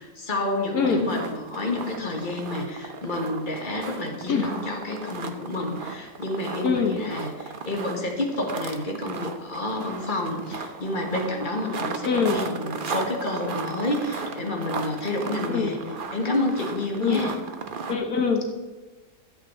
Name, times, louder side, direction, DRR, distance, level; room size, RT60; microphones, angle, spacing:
voice 1, 0.0-15.8 16.1-17.3, left 2 dB, 30° left, 1 dB, 1.8 m, -29 dB
sound 1, 0.8-18.0, right 4 dB, 45° right, 0.8 m, -35 dB
voice 2, 6.6-7.0 12.0-12.4 15.5-15.7 17.0-17.2 17.9-18.5, left 5 dB, 70° left, 3 dB, 1.5 m, -23 dB
12.5 x 8.4 x 4.5 m, 1.2 s
omnidirectional pair, 1.6 m